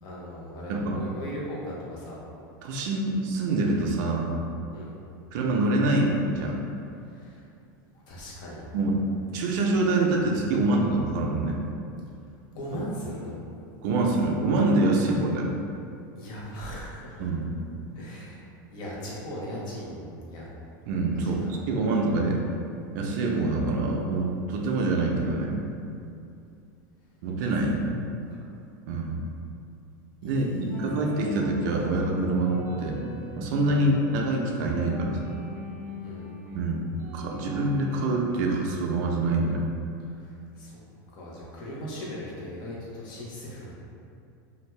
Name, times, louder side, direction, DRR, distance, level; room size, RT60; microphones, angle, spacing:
voice 1, 0.0-2.2 4.7-4.9 7.1-7.4 8.0-8.6 12.5-13.4 16.1-17.3 17.9-20.5 21.1-21.5 30.2-30.8 33.7-33.9 36.0-36.3 40.2-40.8 41.1-43.7, equal, 45° left, -5 dB, 0.9 m, -39 dB
voice 2, 2.6-4.4 5.3-6.6 8.7-9.0 9.3-11.6 13.8-15.5 17.2-17.5 20.9-22.4 22.9-25.6 27.2-28.0 28.9-29.2 30.2-33.0 33.4-35.3 36.5-39.6, right 2 dB, 65° right, -1 dB, 0.4 m, -25 dB
sound 1, 30.7-38.6, left 3 dB, 20° right, 0.7 m, -40 dB
2.6 x 2.3 x 3.2 m, 2.6 s
supercardioid pair, 130°, 11 cm